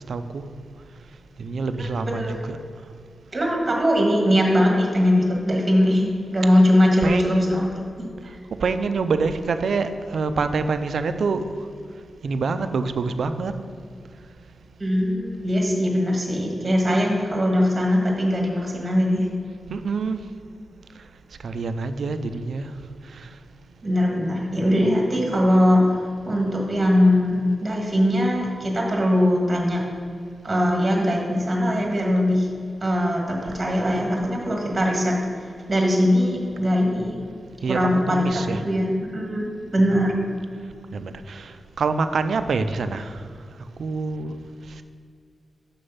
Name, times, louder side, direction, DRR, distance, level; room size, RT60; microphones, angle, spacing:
voice 1, 0.1-0.4 1.4-2.6 7.0-7.6 8.6-11.4 12.2-13.5 19.7-20.2 21.4-22.7 37.6-38.6 39.8-40.0 40.9-41.5 41.8-43.2 43.8-44.3, right 4 dB, 65° right, 9 dB, 0.4 m, -26 dB
voice 2, 2.0-2.4 3.3-7.7 8.0-8.3 14.8-19.3 23.8-29.8 30.4-32.5 32.8-35.1 35.7-37.1 37.7-40.1, equal, 25° right, -1 dB, 1.6 m, -21 dB
6.6 x 6.1 x 5.6 m, 2.2 s
wide cardioid pair, 155°, 0 cm